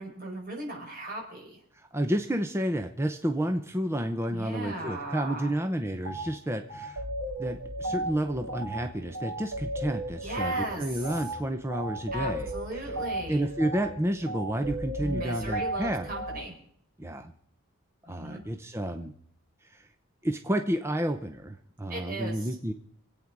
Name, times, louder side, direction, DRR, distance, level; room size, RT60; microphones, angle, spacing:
voice 1, 0.0-1.6 4.3-5.5 10.2-11.2 12.1-13.5 15.0-16.5 18.0-18.4 21.9-22.5, right 2 dB, 40° right, -1 dB, 4.7 m, -37 dB
voice 2, 1.9-7.0 7.4-12.5 13.3-16.1 17.0-17.3 18.1-19.1 19.7-19.9 20.2-22.7, right 1 dB, 10° right, 7 dB, 0.6 m, -30 dB
sound 1, 6.0-6.2 6.7-16.4, right 1 dB, 70° right, 4.4 m, -35 dB
25.5 x 8.8 x 4.7 m, 0.64 s
head